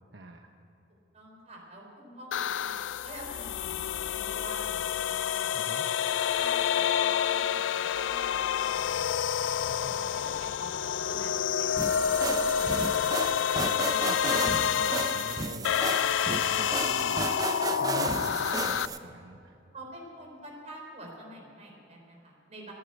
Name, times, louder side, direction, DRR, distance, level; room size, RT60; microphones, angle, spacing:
voice 1, 0.1-0.5 5.5-5.8 9.7-10.0 13.0-13.1 13.9-17.2 17.8-19.6, right 2 dB, 75° right, 3 dB, 1.0 m, -44 dB
voice 2, 1.1-5.5 6.1-11.9 12.2-13.6 19.7-22.7, right 1 dB, 40° right, -1 dB, 4.0 m, -48 dB
sound 1, 2.3-18.9, left 8 dB, 85° left, 0.4 m, -28 dB
sound 2, 11.8-19.0, right 3 dB, 20° right, 0.6 m, -34 dB
15.0 x 10.0 x 9.0 m, 2.7 s
head